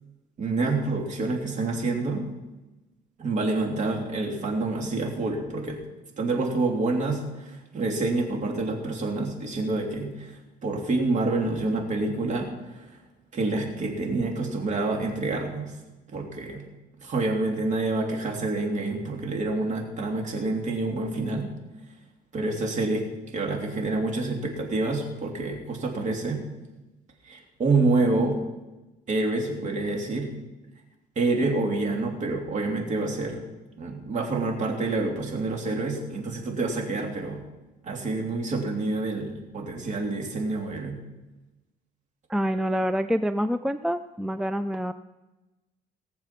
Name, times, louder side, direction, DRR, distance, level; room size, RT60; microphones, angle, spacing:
voice 1, 0.4-2.3 3.2-5.8 6.2-12.5 12.8-13.0 13.3-15.7 16.1-16.6 17.0-21.5 22.3-23.0 23.3-26.4 27.2-28.4 29.1-30.3 31.1-33.4 33.8-37.4 37.8-41.0, right 3 dB, 45° right, 1 dB, 3.0 m, -27 dB
voice 2, 42.3-44.9, equal, 5° right, 11 dB, 0.4 m, -26 dB
19.0 x 7.0 x 5.9 m, 1.1 s
cardioid pair, 110°, 17 cm